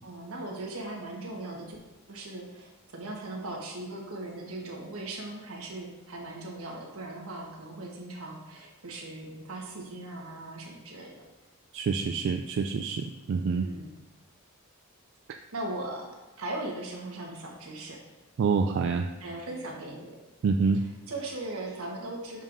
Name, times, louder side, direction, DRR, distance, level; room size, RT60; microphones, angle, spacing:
voice 1, 0.0-1.8 2.1-11.2 13.5-13.9 15.5-18.0 19.2-20.2 20.7-22.4, right 2 dB, 85° right, 0 dB, 1.2 m, -39 dB
voice 2, 11.7-13.6 18.4-19.1 20.4-20.8, right 5 dB, 60° right, 5 dB, 0.3 m, -27 dB
7.1 x 5.4 x 2.6 m, 1.1 s
head